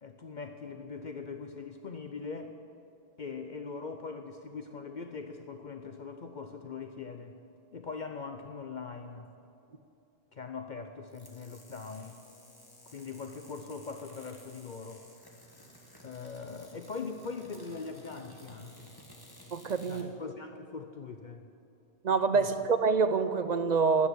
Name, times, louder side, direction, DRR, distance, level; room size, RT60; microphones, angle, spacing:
voice 1, 0.0-2.5 3.2-7.3 7.7-9.3 10.3-12.2 12.9-15.0 16.0-18.9 19.8-21.5 22.3-22.5, left 4 dB, 50° left, 6 dB, 0.8 m, -41 dB
sound 1, 11.1-20.1, equal, 20° left, 1.6 m, -55 dB
voice 2, 19.5-20.0 22.0-24.1, right 5 dB, 50° right, 11 dB, 0.6 m, -26 dB
12.5 x 8.5 x 9.8 m, 2.6 s
omnidirectional pair, 1.1 m